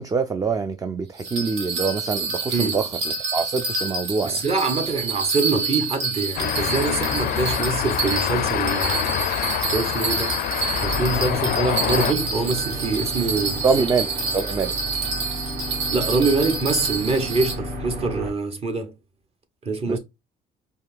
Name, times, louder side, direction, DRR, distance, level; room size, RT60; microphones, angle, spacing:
voice 1, 0.0-2.9 3.3-4.4 13.6-14.7 19.9-20.0, right 4 dB, 20° right, 0.4 m, -24 dB
Bell, 1.2-17.5, right 4 dB, 80° right, 1.2 m, -28 dB
voice 2, 4.2-9.1 9.7-10.4 10.8-13.9 15.9-18.9 19.6-20.0, right 3 dB, 35° right, 1.0 m, -24 dB
sound 1, 6.4-12.1, left 12 dB, 60° left, 0.4 m, -26 dB
sound 2, 10.7-18.3, equal, 55° right, 2.0 m, -32 dB
4.8 x 2.8 x 2.3 m
cardioid pair, 110°, 17 cm